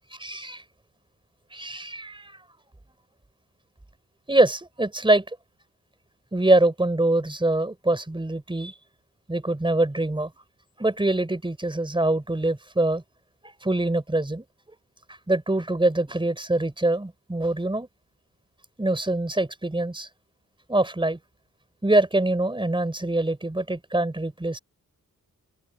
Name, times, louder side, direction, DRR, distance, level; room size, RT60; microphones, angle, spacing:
voice 1, 0.2-0.6 1.5-2.4 4.3-5.2 6.3-8.7 9.3-10.3 10.8-13.0 13.4-14.4 15.3-17.9 18.8-20.1 20.7-21.2 21.8-24.6, right 2 dB, 15° right, 4.0 m, -24 dB
open air
wide cardioid pair, 90°, 33 cm